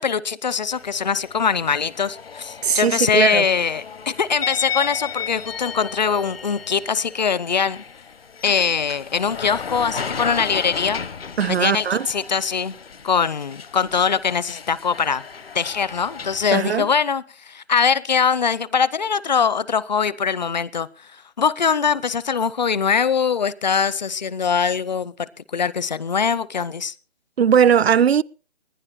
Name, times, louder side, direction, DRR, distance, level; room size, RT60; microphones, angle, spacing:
voice 1, 0.0-7.8 8.4-11.0 11.5-12.7 13.0-15.2 15.5-20.9 21.4-26.9, left 6 dB, 45° left, 0.7 m, -22 dB
sound 1, 0.7-16.5, left 6 dB, 65° left, 1.2 m, -34 dB
voice 2, 2.6-3.5 11.4-12.1 16.5-16.9 27.4-28.2, right 8 dB, 75° right, 0.6 m, -18 dB
20.5 x 11.5 x 4.2 m
figure-of-eight pair, 165°, 31 cm